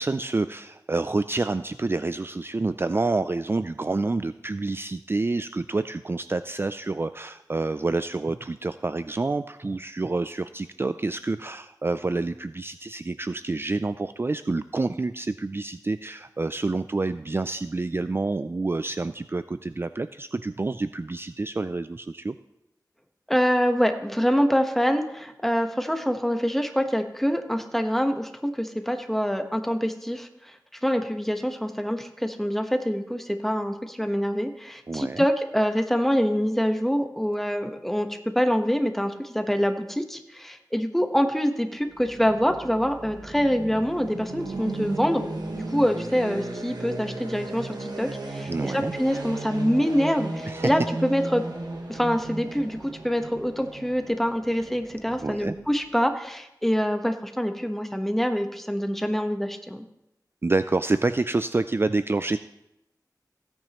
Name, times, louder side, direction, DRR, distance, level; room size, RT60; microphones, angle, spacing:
voice 1, 0.0-22.4 34.9-35.3 48.5-48.9 50.5-50.7 55.2-55.6 60.4-62.4, right 3 dB, 35° right, 12 dB, 0.3 m, -28 dB
voice 2, 23.3-30.5 30.8-45.3 45.6-51.4 51.9-59.8, equal, 5° left, 6 dB, 1.1 m, -25 dB
sound 1, 41.9-55.8, right 2 dB, 70° right, 1.5 m, -36 dB
16.5 x 8.8 x 3.0 m, 0.86 s
wide cardioid pair, 55°, 7 cm